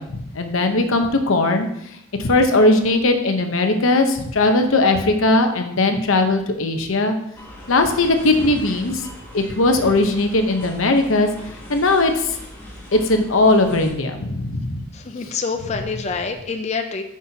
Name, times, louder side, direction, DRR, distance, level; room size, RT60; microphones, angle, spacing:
voice 1, 0.0-1.7 2.2-7.1 7.7-9.0 9.3-11.3 11.7-12.4 12.9-14.9 15.2-15.3, left 2 dB, 90° left, 5 dB, 0.9 m, -18 dB
sound 1, 7.3-13.9, equal, 10° left, 1.9 m, -38 dB
voice 2, 14.9-17.0, left 4 dB, 35° left, 5 dB, 0.5 m, -26 dB
9.7 x 6.1 x 2.8 m, 0.78 s
head